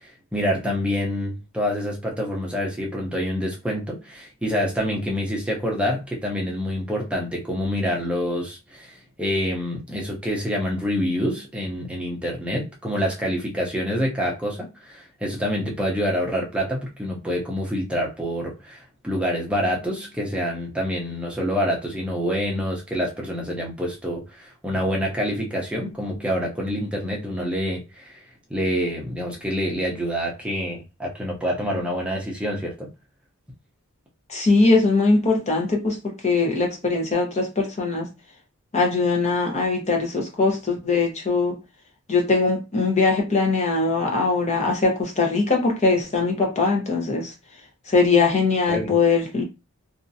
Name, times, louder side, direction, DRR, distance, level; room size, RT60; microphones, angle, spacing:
voice 1, 0.0-28.2 28.5-32.9 48.7-49.0, equal, 5° right, 0.7 m, -27 dB
voice 2, 34.3-38.1 38.7-41.6 42.1-47.3 47.9-49.4, left 3 dB, 30° left, 0.9 m, -21 dB
2.9 x 2.4 x 2.6 m
head